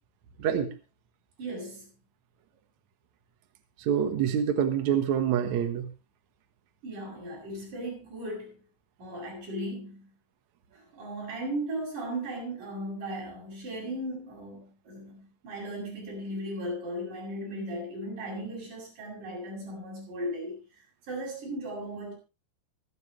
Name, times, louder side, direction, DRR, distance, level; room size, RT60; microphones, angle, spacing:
voice 1, 1.4-1.9 6.8-8.6 9.0-10.1 10.7-20.6 21.1-22.1, right 1 dB, 45° right, -1 dB, 8.8 m, -36 dB
voice 2, 3.8-5.9, right 8 dB, 65° right, 6 dB, 1.8 m, -26 dB
25.0 x 9.4 x 3.2 m, 0.30 s
omnidirectional pair, 5.3 m